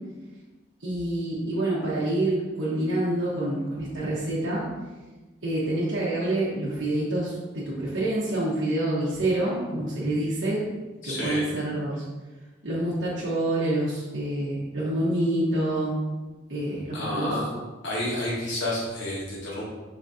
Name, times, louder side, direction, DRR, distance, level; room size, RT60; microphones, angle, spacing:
voice 1, 0.8-4.7 5.4-10.7 11.0-12.0 12.6-15.9 16.5-17.3, right 1 dB, 90° right, -8 dB, 1.1 m, -27 dB
voice 2, 11.0-11.4 16.9-17.4 17.8-19.6, left 1 dB, 80° left, -6 dB, 1.4 m, -30 dB
5.3 x 2.7 x 3.6 m, 1.2 s
head